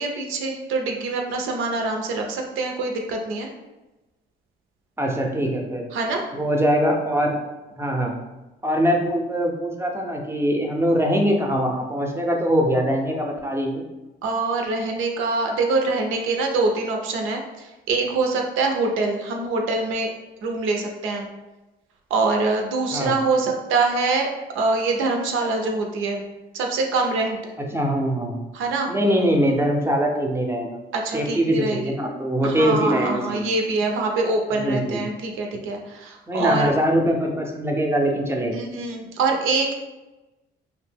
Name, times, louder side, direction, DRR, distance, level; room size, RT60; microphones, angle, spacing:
voice 1, 0.0-3.5 5.9-6.2 14.2-20.1 20.4-21.3 22.1-24.3 24.5-26.2 26.5-27.4 28.5-28.9 30.9-31.9 32.4-36.7 38.5-39.7, right 3 dB, 90° right, 2 dB, 0.5 m, -24 dB
voice 2, 5.0-5.8 6.3-7.4 7.8-8.1 8.6-13.8 22.9-23.1 27.7-28.4 28.9-30.8 31.1-33.5 34.5-35.0 36.3-38.6, equal, 10° right, 1 dB, 0.5 m, -22 dB
2.7 x 2.0 x 3.3 m, 1.1 s
cardioid pair, 90°, 20 cm